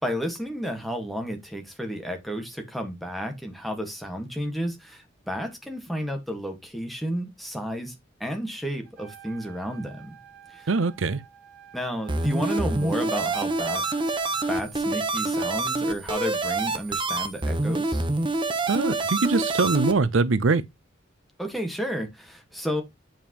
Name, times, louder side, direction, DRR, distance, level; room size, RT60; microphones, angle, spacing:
voice 1, 0.0-7.9 8.2-10.2 10.5-10.7 11.7-13.9 14.5-18.1 21.4-22.8, equal, ahead, 1.5 m, -32 dB
Trumpet, 8.8-14.6, right 9 dB, 45° right, 2.9 m, -50 dB
voice 2, 10.7-11.2 18.7-20.7, right 3 dB, 85° right, 0.6 m, -23 dB
sound 1, 12.1-19.9, right 2 dB, 25° right, 0.8 m, -26 dB
8.9 x 5.2 x 2.9 m
head